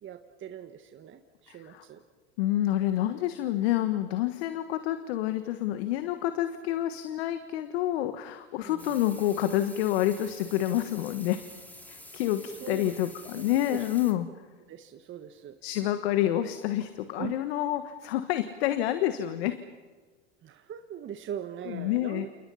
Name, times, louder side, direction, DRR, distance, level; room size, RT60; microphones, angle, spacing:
voice 1, 0.0-2.0 8.6-8.9 12.6-13.0 13.3-13.8 14.7-15.5 17.2-17.3 20.4-22.3, right 9 dB, 35° right, 6 dB, 1.6 m, -41 dB
voice 2, 1.5-1.8 2.4-11.4 11.9-14.3 15.6-19.6 21.7-22.3, left 13 dB, 70° left, 10 dB, 1.5 m, -28 dB
sound 1, 8.8-14.1, left 1 dB, 5° left, 3.3 m, -48 dB
29.5 x 29.0 x 5.7 m, 1.4 s
hypercardioid pair, 90°, 33 cm